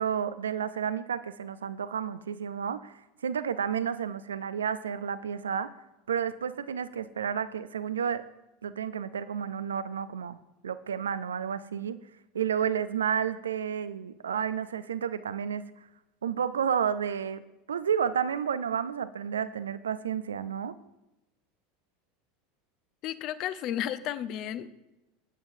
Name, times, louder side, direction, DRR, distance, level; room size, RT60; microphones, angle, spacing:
voice 1, 0.0-2.9 3.2-5.7 6.1-8.2 8.6-10.4 10.6-12.0 12.3-15.7 16.2-17.4 17.7-20.7, right 8 dB, 80° right, 14 dB, 0.5 m, -31 dB
voice 2, 23.0-24.7, left 11 dB, 50° left, 12 dB, 0.7 m, -33 dB
19.0 x 8.7 x 2.7 m, 0.95 s
figure-of-eight pair, 80°, 0 cm